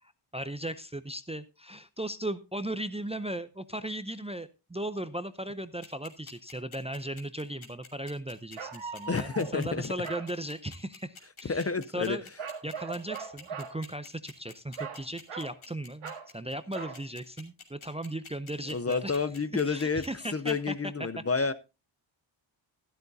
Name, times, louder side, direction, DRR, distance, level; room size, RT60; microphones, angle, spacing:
voice 1, 0.0-12.2 12.6-19.3 19.6-20.7 21.0-21.5, right 1 dB, 15° right, 12 dB, 0.5 m, -37 dB
sound 1, 5.8-20.5, left 5 dB, 75° left, 2.8 m, -48 dB
sound 2, 8.6-9.6 10.0-10.3 12.4-13.8 14.8-15.6 16.0-16.3 16.7-17.0, right 6 dB, 80° right, 1.7 m, -40 dB
voice 2, 9.1-9.9 11.5-12.2 18.7-20.0 20.3-21.5, left 4 dB, 30° left, 14 dB, 0.6 m, -29 dB
13.5 x 12.0 x 2.7 m, 0.28 s
wide cardioid pair, 135°, 49 cm